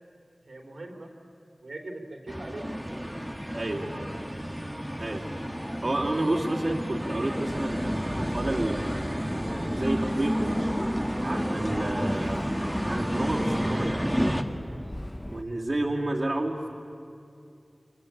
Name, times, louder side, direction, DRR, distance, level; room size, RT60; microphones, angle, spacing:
voice 1, 0.4-1.1 1.6-2.7 15.4-15.7, right 2 dB, 80° right, 2 dB, 3.3 m, -41 dB
sound 1, 2.3-14.4, equal, 5° right, 1.5 m, -31 dB
voice 2, 3.5-4.0 5.0-5.4 5.8-10.6 11.2-12.5 12.9-14.4 15.3-16.7, right 1 dB, 50° right, -3 dB, 2.7 m, -30 dB
Subway metro underground, 7.4-15.4, left 1 dB, 15° left, 0.9 m, -38 dB
24.5 x 24.5 x 8.7 m, 2.5 s
wide cardioid pair, 60°, 0 cm